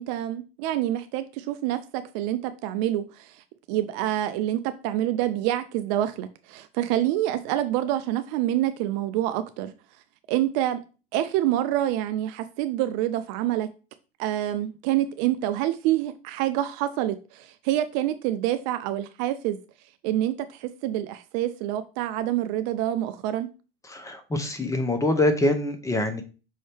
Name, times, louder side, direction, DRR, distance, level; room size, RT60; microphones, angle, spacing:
voice 1, 0.0-9.7 10.3-10.8 11.1-13.7 14.2-19.6 20.0-23.5, right 13 dB, 45° right, 0.4 m, -27 dB
voice 2, 23.9-26.2, left 1 dB, 10° left, 0.7 m, -24 dB
5.5 x 2.7 x 3.4 m
hypercardioid pair, 95°, 31 cm